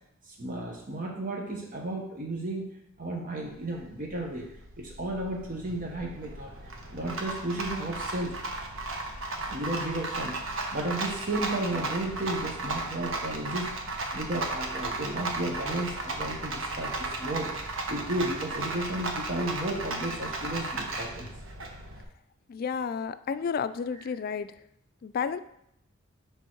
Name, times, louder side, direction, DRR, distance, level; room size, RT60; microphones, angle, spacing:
voice 1, 0.3-2.7 3.0-4.5 4.8-6.5 6.9-8.4 9.5-10.4 10.7-13.7 14.1-17.5 17.9-21.3, right 1 dB, 45° right, 0 dB, 1.0 m, -33 dB
Rattle, 3.4-22.0, right 2 dB, 75° right, 1.1 m, -35 dB
voice 2, 22.5-24.5 25.0-25.4, left 6 dB, 45° left, 13 dB, 0.3 m, -31 dB
10.5 x 3.5 x 4.5 m, 0.79 s
head